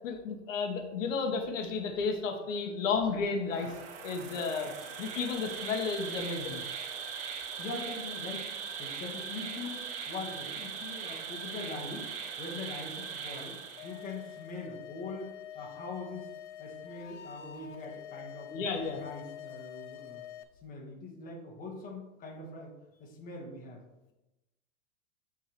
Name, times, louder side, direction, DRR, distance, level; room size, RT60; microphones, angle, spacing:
voice 1, 0.0-3.7 4.0-4.7 5.0-6.6 18.5-19.0, left 5 dB, 75° left, 3 dB, 1.2 m, -32 dB
Insect, 3.5-14.3, right 6 dB, 20° right, 0.4 m, -40 dB
voice 2, 7.6-8.5 8.8-12.1 12.4-18.5 18.8-20.2 20.6-22.7 23.0-23.8, left 3 dB, 20° left, -2 dB, 1.3 m, -42 dB
sound 1, 13.8-20.4, left 10 dB, 40° left, 0.4 m, -46 dB
11.0 x 3.7 x 3.0 m, 0.98 s
supercardioid pair, 150°, 39 cm